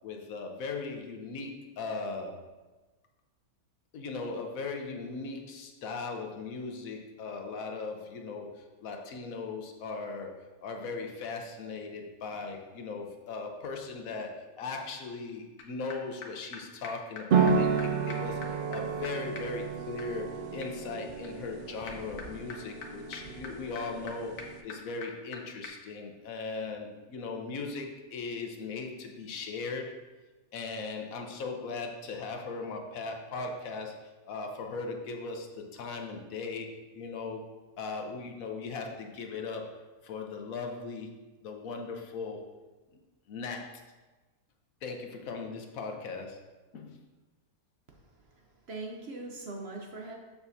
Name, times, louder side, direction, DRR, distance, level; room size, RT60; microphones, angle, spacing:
voice 1, 0.0-2.4 3.9-30.0 30.5-37.5 37.8-41.1 41.4-42.4 43.3-43.8 44.8-46.4 46.7-47.0, left 4 dB, 70° left, 3 dB, 1.1 m, -38 dB
sound 1, 15.6-15.7 15.9-16.0 16.2-16.3 16.5-16.6 16.8-16.9 17.2-17.3 17.5-17.6 17.8-17.9 18.1-25.4 25.6-25.7, left 5 dB, 90° left, 1.4 m, -46 dB
sound 2, 17.3-24.6, right 5 dB, 80° right, 0.4 m, -31 dB
voice 2, 48.3-50.1, right 2 dB, 50° right, 1 dB, 0.9 m, -41 dB
6.9 x 6.8 x 2.7 m, 1.2 s
omnidirectional pair, 1.5 m